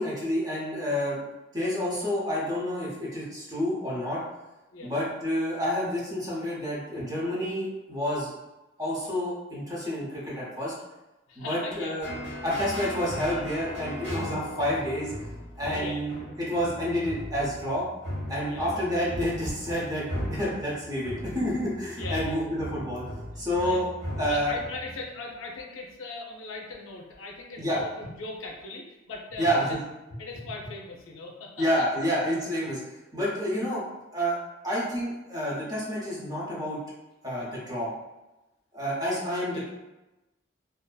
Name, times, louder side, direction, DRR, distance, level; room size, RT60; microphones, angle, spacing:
voice 1, 0.0-4.2 4.8-8.3 8.8-10.7 11.4-12.1 12.4-15.1 15.6-17.9 18.3-23.0 23.4-23.9 24.2-24.5 27.6-27.8 29.4-29.8 31.6-32.8 33.1-33.8 34.1-34.4 34.6-36.8 37.2-37.9 38.7-39.7, equal, 20° right, -6 dB, 0.6 m, -29 dB
voice 2, 11.3-12.0 12.5-12.6 15.7-16.0 18.5-18.8 21.9-22.5 23.6-23.8 24.3-29.8 30.2-31.9 39.5-39.7, left 3 dB, 90° left, 1 dB, 0.5 m, -39 dB
sound 1, 12.0-25.1, equal, 65° right, 1.0 m, -38 dB
2.6 x 2.4 x 2.2 m, 1.0 s
head